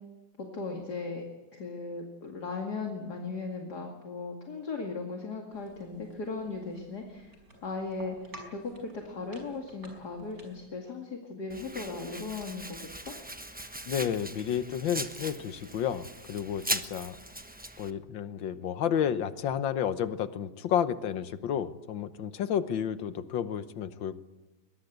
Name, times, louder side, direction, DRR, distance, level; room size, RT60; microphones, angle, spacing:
voice 1, 0.4-1.2 1.5-7.3 7.6-13.1, left 4 dB, 55° left, 1 dB, 2.8 m, -37 dB
sound 1, 5.5-10.7, right 1 dB, 45° right, 6.0 m, -52 dB
Domestic sounds home sounds, 11.5-17.9, right 1 dB, 10° right, 0.6 m, -39 dB
voice 2, 13.9-17.2 17.8-24.2, left 9 dB, 75° left, 12 dB, 1.8 m, -31 dB
22.0 x 21.0 x 8.0 m, 1.0 s
omnidirectional pair, 2.1 m